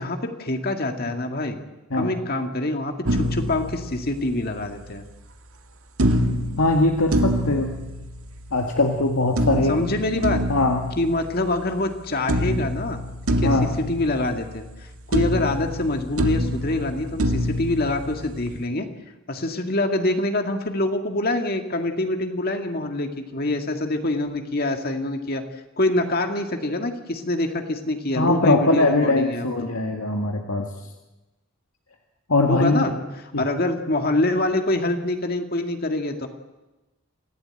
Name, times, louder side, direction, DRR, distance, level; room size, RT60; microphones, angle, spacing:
voice 1, 0.0-1.6 2.0-5.0 9.7-10.4 11.0-13.0 13.3-18.9 19.3-25.4 25.8-29.7 32.5-32.9 33.4-36.3, left 2 dB, 45° left, 5 dB, 2.0 m, -25 dB
sound 1, 3.0-4.6 6.0-8.6 9.4-11.9 12.3-14.8 15.1-18.6, equal, 85° right, 2.0 m, -26 dB
voice 2, 6.6-7.7 8.5-9.8 10.5-10.8 13.4-13.7 28.2-30.7 32.3-32.9 33.3-33.5, left 2 dB, 80° left, 2 dB, 1.9 m, -21 dB
26.5 x 16.0 x 9.0 m, 1.1 s
head